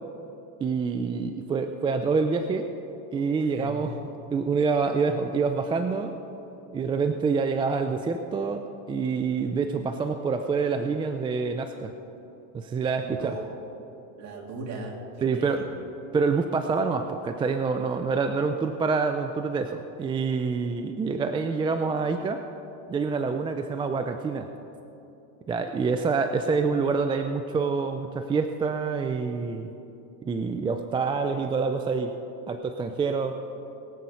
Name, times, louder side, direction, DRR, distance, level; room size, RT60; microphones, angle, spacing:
voice 1, 0.6-2.7 3.1-3.9 4.3-6.2 6.7-11.9 12.5-13.4 15.2-15.6 16.1-22.4 22.9-24.5 25.5-29.7 30.2-32.1 32.5-33.4, right 4 dB, 15° right, 7 dB, 0.3 m, -26 dB
voice 2, 3.4-4.0 13.2-13.6 14.2-15.8 17.9-18.0, right 2 dB, 40° right, 0 dB, 2.5 m, -38 dB
21.5 x 7.8 x 5.6 m, 2.8 s
supercardioid pair, 135°, 41 cm